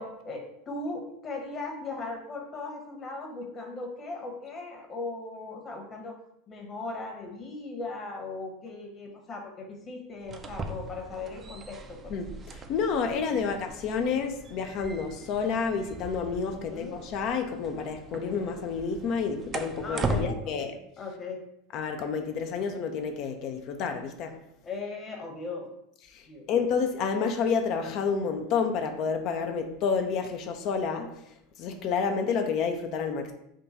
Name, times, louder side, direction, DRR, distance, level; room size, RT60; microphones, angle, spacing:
voice 1, 0.0-6.2 6.5-12.1 13.3-13.4 16.5-16.9 19.8-20.7 21.0-21.4 24.6-25.7 26.3-26.5, left 3 dB, 30° left, 1.0 m, -38 dB
sound 1, 10.2-20.3, right 2 dB, 30° right, 0.4 m, -38 dB
voice 2, 12.1-20.7 21.7-24.4 26.1-33.3, left 5 dB, 50° left, 0.4 m, -30 dB
3.7 x 2.3 x 3.9 m
hypercardioid pair, 90°, 0 cm